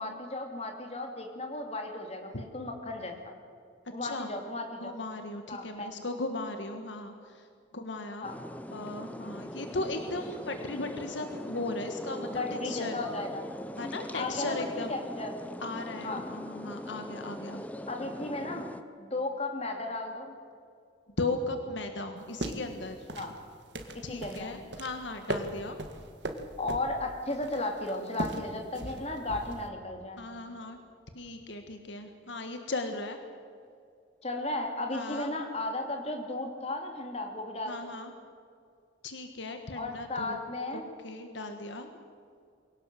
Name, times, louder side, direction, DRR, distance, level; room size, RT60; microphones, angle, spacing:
voice 1, 0.0-3.3 3.9-4.9 5.5-5.9 8.2-8.3 12.3-13.4 14.1-15.4 16.0-16.3 17.9-18.7 19.0-20.3 23.2-23.3 24.1-24.5 26.6-30.3 34.2-38.0 39.7-40.9, left 2 dB, 35° left, 3 dB, 2.7 m, -35 dB
voice 2, 4.8-7.5 7.7-8.3 8.7-13.0 13.8-14.9 15.6-17.6 21.2-23.1 24.0-25.8 30.2-30.8 31.1-33.2 34.9-35.3 37.7-38.1 39.0-40.4 40.7-41.9, left 2 dB, 65° left, 6 dB, 1.5 m, -37 dB
sound 1, 8.2-18.8, equal, 10° left, 0.8 m, -41 dB
sound 2, 22.2-29.7, right 1 dB, 60° right, 1.9 m, -39 dB
23.5 x 17.5 x 7.7 m, 2.3 s
head